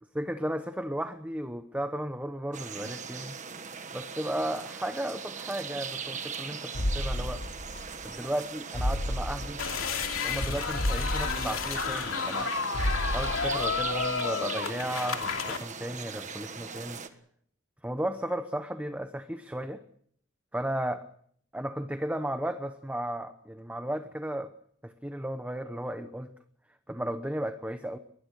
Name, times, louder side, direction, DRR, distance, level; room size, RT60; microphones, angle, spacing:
voice 1, 0.1-3.4 3.9-7.4 8.0-9.6 10.2-12.5 13.0-17.0 17.8-19.8 20.5-21.1 21.5-24.5 24.8-26.3 26.9-28.0, right 1 dB, 5° right, 8 dB, 0.9 m, -34 dB
sound 1, 2.5-17.1, right 6 dB, 35° right, 1.5 m, -40 dB
sound 2, 6.7-8.1 8.4-8.5 8.7-10.1 10.4-10.5 10.7-12.5 12.7-14.1 14.4-14.5, left 1 dB, 55° left, 2.0 m, -32 dB
sound 3, 9.6-15.6, left 5 dB, 80° left, 2.7 m, -31 dB
22.5 x 20.0 x 6.6 m, 0.65 s
head